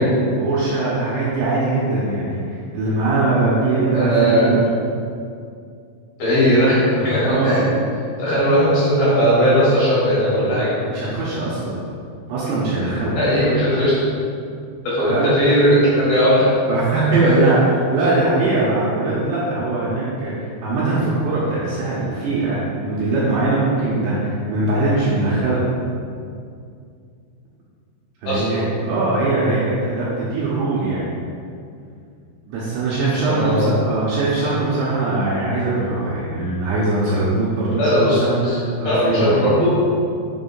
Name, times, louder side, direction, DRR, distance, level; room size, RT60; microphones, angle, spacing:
voice 1, 0.0-4.6 7.0-7.6 10.9-11.7 12.3-13.2 15.0-15.3 16.7-25.6 28.2-31.1 32.5-38.4 38.8-39.5, right 2 dB, 75° right, -8 dB, 2.7 m, -21 dB
voice 2, 3.9-4.5 6.2-7.6 8.2-10.7 13.2-13.9 14.8-16.5 17.2-17.3 28.3-28.6 33.1-33.8 37.8-38.6 38.8-39.7, equal, 65° left, -9 dB, 2.5 m, -18 dB
7.1 x 3.4 x 5.5 m, 2.3 s
omnidirectional pair, 5.9 m